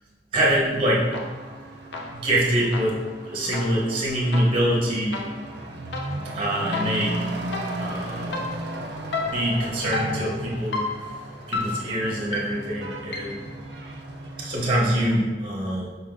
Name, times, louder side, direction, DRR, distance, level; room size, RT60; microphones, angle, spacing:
voice 1, 0.3-1.1 1.9-3.0 3.3-5.2 6.3-7.2 7.7-8.4 9.3-10.8 11.5-13.4 14.4-15.9, right 1 dB, 30° right, -5 dB, 0.9 m, -24 dB
Truck / Accelerating revving vroom, 0.7-15.2, right 1 dB, 70° right, 0.5 m, -36 dB
sound 1, 1.1-1.6 1.9-13.5, left 3 dB, 85° left, 0.6 m, -34 dB
5.2 x 3.6 x 2.5 m, 1.4 s
head